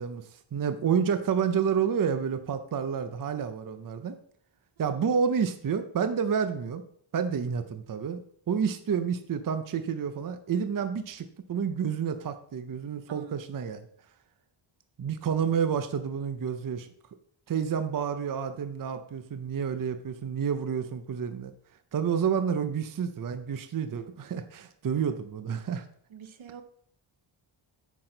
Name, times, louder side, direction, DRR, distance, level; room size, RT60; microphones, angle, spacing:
voice 1, 0.0-4.2 4.8-6.8 7.1-8.2 8.5-13.9 15.0-16.9 17.5-21.5 21.9-25.9, right 7 dB, 45° right, 9 dB, 0.6 m, -29 dB
voice 2, 4.8-5.1 13.1-13.5 26.1-26.6, right 8 dB, 75° right, 10 dB, 0.9 m, -45 dB
8.6 x 6.2 x 3.9 m, 0.63 s
wide cardioid pair, 145°, 47 cm